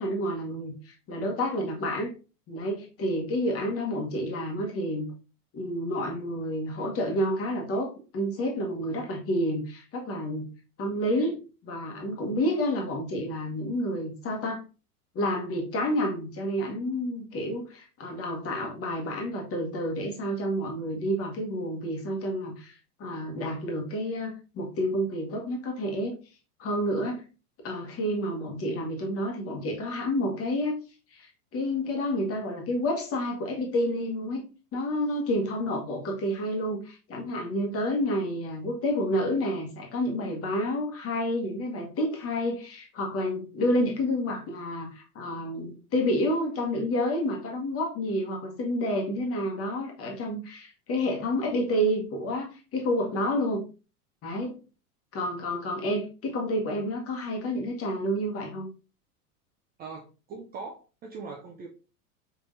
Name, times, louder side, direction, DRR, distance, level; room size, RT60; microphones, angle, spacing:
voice 1, 0.0-2.1 2.5-5.1 5.5-10.5 10.8-14.6 15.1-26.1 26.6-27.2 27.6-30.8 31.1-34.4 34.7-53.6 54.2-54.6 55.1-58.7, equal, 30° left, 1.2 m, -29 dB
voice 2, 59.8-61.7, right 4 dB, 20° right, 0.5 m, -41 dB
4.6 x 3.5 x 2.6 m
hypercardioid pair, 90°, 47 cm